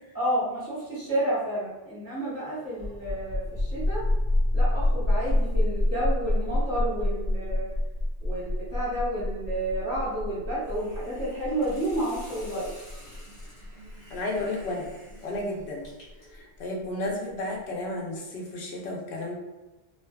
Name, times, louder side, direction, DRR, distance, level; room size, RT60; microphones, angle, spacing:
voice 1, 0.1-4.0 4.5-7.7 8.2-12.7, right 1 dB, 15° left, -11 dB, 0.7 m, -30 dB
sound 1, 2.7-16.1, left 1 dB, 70° right, 0.9 m, -27 dB
Hiss, 10.6-16.4, equal, 60° left, 1.2 m, -50 dB
voice 2, 14.1-14.9 15.2-15.9 16.3-19.3, left 2 dB, 75° left, -1 dB, 0.9 m, -32 dB
2.5 x 2.3 x 2.2 m, 1.1 s
omnidirectional pair, 1.1 m